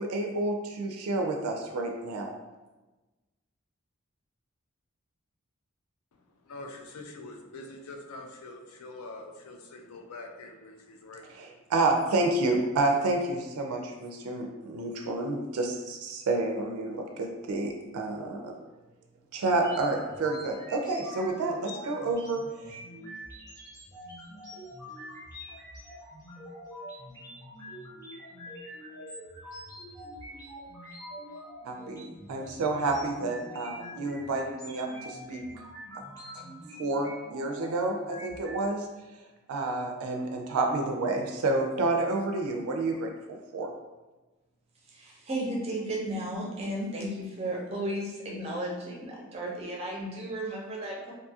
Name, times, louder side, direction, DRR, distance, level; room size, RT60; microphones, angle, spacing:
voice 1, 0.0-2.4 11.4-18.5 19.3-22.8 31.6-35.4 36.3-36.4 36.8-38.9 39.5-43.1 43.5-43.7, right 2 dB, 85° right, 2 dB, 0.3 m, -29 dB
voice 2, 6.1-11.5, left 2 dB, 85° left, 3 dB, 0.4 m, -45 dB
sound 1, 19.5-38.7, equal, 15° left, 0.7 m, -45 dB
voice 3, 44.9-51.1, right 1 dB, 30° right, -2 dB, 0.5 m, -34 dB
2.6 x 2.3 x 2.6 m, 1.2 s
head